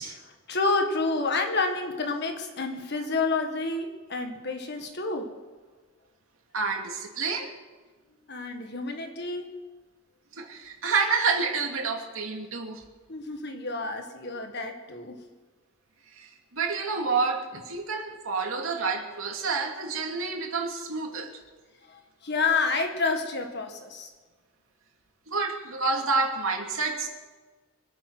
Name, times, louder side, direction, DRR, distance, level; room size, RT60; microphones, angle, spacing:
voice 1, 0.0-5.3 8.3-9.5 13.1-15.2 21.9-24.1, left 3 dB, 55° left, 1.7 m, -29 dB
voice 2, 6.5-7.5 10.3-12.8 16.1-21.3 25.3-27.1, right 4 dB, 85° right, 2.6 m, -29 dB
25.0 x 9.0 x 6.2 m
head